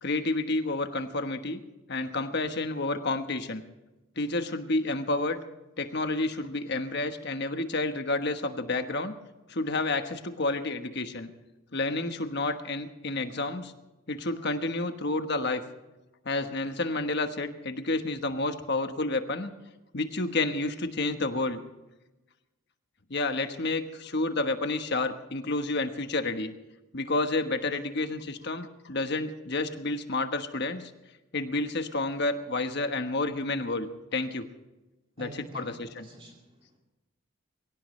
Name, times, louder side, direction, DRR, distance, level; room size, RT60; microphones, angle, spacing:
voice 1, 0.0-1.6 1.9-3.6 4.2-5.4 5.8-9.1 9.5-11.3 11.7-13.7 14.1-15.6 16.2-19.5 19.9-21.6 23.1-26.5 26.9-30.9 31.3-34.5 35.2-36.1, left 2 dB, 55° left, 7 dB, 1.3 m, -30 dB
voice 2, 35.2-36.8, right 1 dB, 25° right, -1 dB, 2.4 m, -47 dB
23.0 x 17.0 x 3.3 m, 1.0 s
head